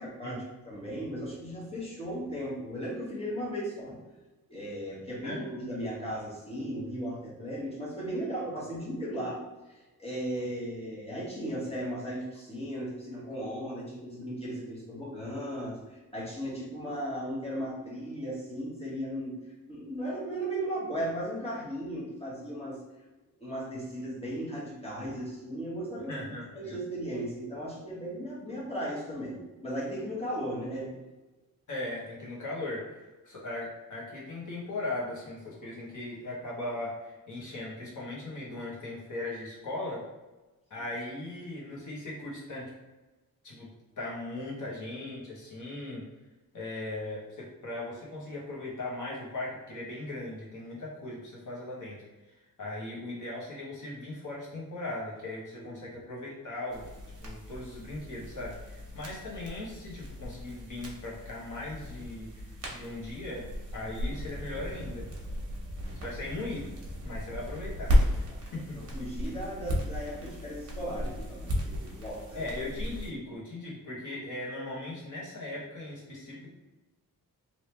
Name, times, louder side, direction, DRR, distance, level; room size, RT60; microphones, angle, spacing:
voice 1, 0.0-4.0 4.5-19.4 19.7-22.8 23.4-26.3 26.5-30.9 40.8-40.9 55.6-56.0 66.0-66.1 68.3-72.4, equal, 15° left, -6 dB, 1.2 m, -36 dB
voice 2, 26.1-26.8 31.7-40.0 40.7-42.7 43.4-43.7 44.0-46.1 46.5-52.0 52.6-56.9 57.2-65.1 66.0-66.7 67.0-68.2 68.5-68.8 72.3-76.5, left 2 dB, 60° left, -5 dB, 1.3 m, -38 dB
sound 1, 56.7-73.1, equal, 45° right, 1.0 m, -34 dB
3.3 x 2.9 x 2.9 m, 1.1 s
wide cardioid pair, 135°, 35 cm